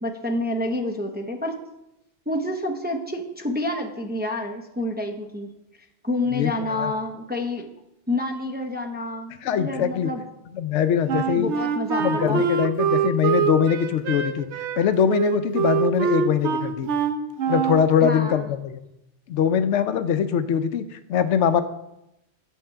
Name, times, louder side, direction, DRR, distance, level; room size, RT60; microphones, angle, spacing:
voice 1, 0.0-1.5 2.3-5.5 6.0-7.7 8.1-10.2 11.4-12.4 18.0-18.5, left 1 dB, 10° right, 2 dB, 0.6 m, -28 dB
voice 2, 6.3-6.9 9.4-10.1 10.5-11.5 12.0-14.5 14.8-16.9 17.5-18.8 19.3-21.6, left 8 dB, 90° left, 12 dB, 0.9 m, -22 dB
Wind instrument woodwind instrument, 11.1-17.9, right 8 dB, 85° right, 1.0 m, -24 dB
7.3 x 5.6 x 5.7 m, 0.87 s
omnidirectional pair, 1.2 m